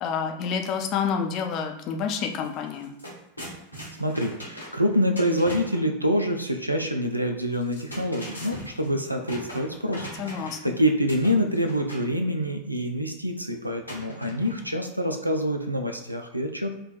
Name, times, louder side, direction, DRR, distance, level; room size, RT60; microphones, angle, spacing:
voice 1, 0.0-2.9 10.2-10.6, left 6 dB, 35° left, 4 dB, 0.5 m, -28 dB
sound 1, 2.3-2.5 2.7-5.9 7.5-10.7 11.1-12.1 13.9-14.8, equal, 90° left, 0.9 m, -40 dB
voice 2, 4.0-16.8, equal, 85° right, 5 dB, 0.4 m, -26 dB
4.5 x 2.1 x 2.4 m, 0.89 s
figure-of-eight pair, 90°, 0 cm